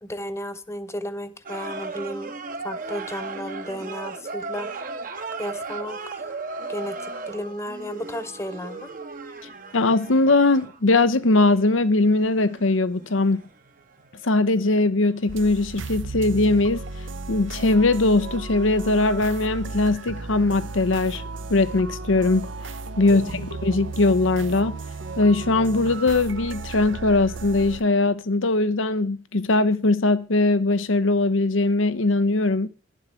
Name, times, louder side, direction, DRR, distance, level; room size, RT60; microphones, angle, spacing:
voice 1, 0.0-2.3 2.6-4.7 5.4-6.4 6.7-8.9 23.1-23.5, equal, 15° left, 0.9 m, -34 dB
sound 1, 1.5-14.9 15.1-15.3, right 3 dB, 45° right, 1.1 m, -36 dB
voice 2, 9.7-13.4 14.2-16.8 17.3-21.2 21.5-22.5 23.0-24.8 25.2-32.7, left 2 dB, 85° left, 0.9 m, -20 dB
sound 2, 15.3-27.8, right 3 dB, 75° right, 0.8 m, -34 dB
11.5 x 7.3 x 5.9 m
head